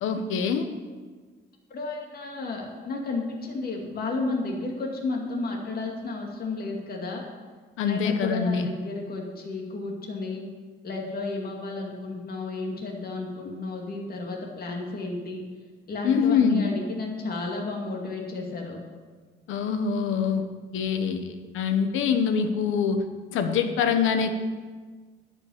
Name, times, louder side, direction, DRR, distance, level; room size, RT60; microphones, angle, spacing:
voice 1, 0.0-0.7 7.8-8.7 16.0-16.7 19.5-20.4 20.7-23.0 23.3-24.3, left 6 dB, 85° left, 8 dB, 1.0 m, -24 dB
voice 2, 1.7-7.2 7.9-10.4 10.8-15.4 15.9-18.8, left 3 dB, 50° left, 0 dB, 2.3 m, -32 dB
10.5 x 5.7 x 8.5 m, 1.4 s
cardioid pair, 90°, 20 cm